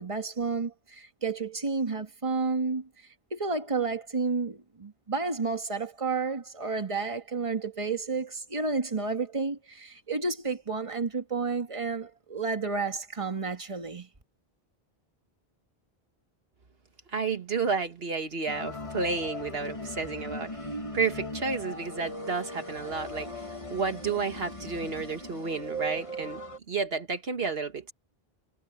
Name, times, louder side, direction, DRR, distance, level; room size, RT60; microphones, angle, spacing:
voice 1, 0.0-2.9 3.3-14.1, right 4 dB, 30° right, 1.8 m, -31 dB
voice 2, 17.1-26.4 26.7-27.9, right 4 dB, 70° right, 1.6 m, -31 dB
sound 1, 18.5-26.6, equal, 30° left, 1.8 m, -38 dB
omnidirectional pair, 1.1 m